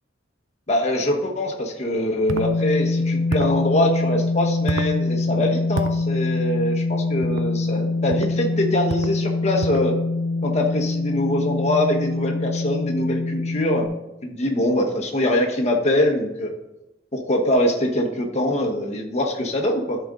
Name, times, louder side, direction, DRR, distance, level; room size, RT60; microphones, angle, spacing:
voice 1, 0.7-10.0 10.4-13.9 14.2-16.5 17.1-20.0, left 1 dB, 35° left, 1 dB, 1.2 m, -23 dB
sound 1, 2.3-13.9, left 3 dB, 65° left, 1.2 m, -24 dB
sound 2, 2.3-2.5 3.3-3.6 4.7-5.0 5.8-6.0 7.2-7.5 8.1-8.4 8.9-9.2 9.6-9.9, right 4 dB, 70° right, 0.4 m, -30 dB
13.0 x 4.4 x 3.8 m, 0.92 s
head